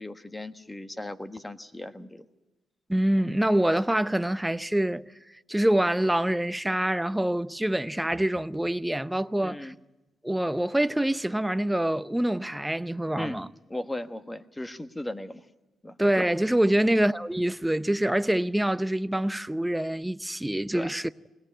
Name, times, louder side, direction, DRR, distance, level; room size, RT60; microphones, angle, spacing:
voice 1, 0.0-2.2 9.4-9.8 13.2-13.4 13.7-15.4 15.8-15.9 16.8-17.0 20.7-20.9, left 1 dB, 15° left, 1.3 m, -37 dB
voice 2, 2.9-5.1 5.5-9.7 10.2-13.5 16.0-21.1, right 1 dB, 10° right, 0.7 m, -25 dB
21.0 x 17.5 x 8.8 m
cardioid pair, 65°, 0 cm